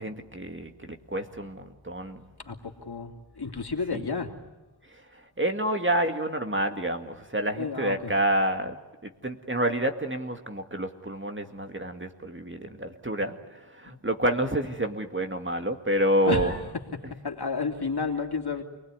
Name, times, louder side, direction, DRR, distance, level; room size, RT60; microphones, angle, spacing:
voice 1, 0.0-2.2 3.9-4.0 4.9-8.8 9.0-16.5, right 1 dB, 25° right, 5 dB, 2.1 m, -28 dB
voice 2, 2.4-4.3 7.5-8.1 16.2-16.6 17.1-18.6, left 4 dB, 55° left, 3 dB, 3.0 m, -31 dB
28.5 x 20.0 x 9.7 m, 1.1 s
wide cardioid pair, 55°, 46 cm